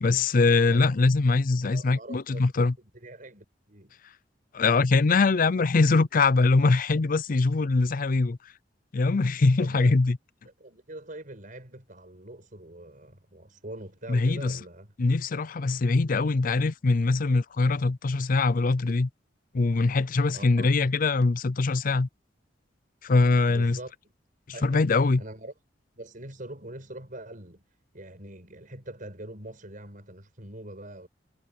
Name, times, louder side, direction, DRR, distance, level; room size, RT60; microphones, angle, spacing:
voice 1, 0.0-2.7 4.5-8.4 8.9-10.2 14.1-14.6 15.0-19.1 19.5-22.1 23.0-23.8 24.6-25.2, left 3 dB, 50° left, 0.5 m, -22 dB
voice 2, 1.6-3.9 9.6-10.0 10.6-14.9 20.3-20.7 23.5-23.9 24.5-25.5 26.0-27.6 27.9-31.1, right 1 dB, 50° right, 6.7 m, -43 dB
head